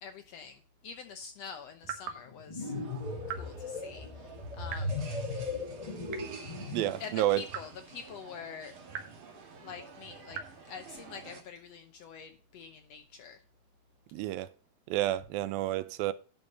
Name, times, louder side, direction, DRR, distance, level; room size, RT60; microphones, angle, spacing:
voice 1, 0.0-2.7 3.3-5.0 5.3-5.5 7.0-8.7 9.3-13.4, left 6 dB, 80° left, 1.5 m, -46 dB
sound 1, 1.8-2.2 3.2-3.5 4.7-5.0 6.1-6.5 7.5-7.8 8.9-9.2 10.3-10.6, right 8 dB, 65° right, 2.6 m, -41 dB
sound 2, 2.3-7.1, left 2 dB, 25° left, 0.7 m, -37 dB
sound 3, 2.6-11.4, right 5 dB, 45° right, 2.3 m, -51 dB
voice 2, 6.7-7.4 14.1-14.5 14.9-16.1, right 14 dB, 90° right, 2.5 m, -30 dB
11.5 x 5.5 x 5.4 m
omnidirectional pair, 4.1 m